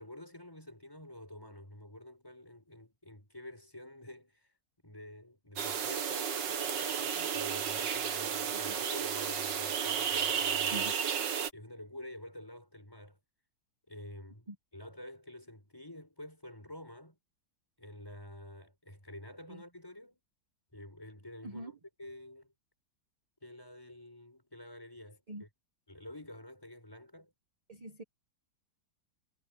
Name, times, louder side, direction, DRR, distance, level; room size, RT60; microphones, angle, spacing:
voice 1, 0.0-4.5 4.8-10.9 11.5-13.2 13.9-17.2 17.8-20.2 20.7-22.5 23.4-25.5 25.9-27.3, left 1 dB, 10° left, 5.3 m, -49 dB
sound 1, 5.6-11.5, right 7 dB, 75° right, 2.1 m, -33 dB
voice 2, 27.7-28.0, right 1 dB, 25° right, 0.9 m, -43 dB
omnidirectional pair, 1.9 m